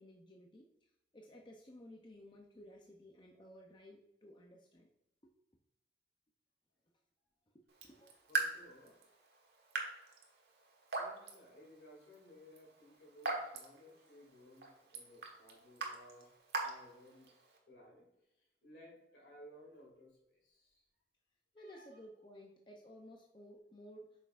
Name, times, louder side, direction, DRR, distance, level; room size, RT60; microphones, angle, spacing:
voice 1, 0.0-4.9 5.2-5.3 7.5-8.3 21.5-24.1, equal, 25° left, 0 dB, 0.6 m, -56 dB
Raindrop / Drip, 7.7-17.6, right 3 dB, 65° right, 1.3 m, -43 dB
voice 2, 8.3-9.0 10.9-16.3 16.6-17.3 17.7-18.1 18.6-20.2 20.4-20.8 21.6-21.8, equal, 70° left, -1 dB, 2.5 m, -59 dB
8.5 x 5.7 x 2.5 m, 0.87 s
head